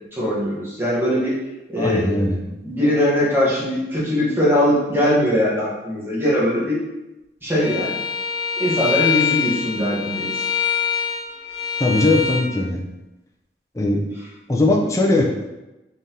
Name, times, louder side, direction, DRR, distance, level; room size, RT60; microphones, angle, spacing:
voice 1, 0.1-1.4 1.7-2.1 2.6-6.8 7.4-8.0 8.6-10.3, equal, 10° right, -8 dB, 1.1 m, -20 dB
voice 2, 1.8-2.4 11.8-12.8 13.7-14.0 14.5-15.3, left 2 dB, 20° left, 0 dB, 0.4 m, -19 dB
Bowed string instrument, 7.6-12.5, left 7 dB, 70° left, 0.9 m, -24 dB
3.9 x 3.3 x 2.7 m, 0.99 s
head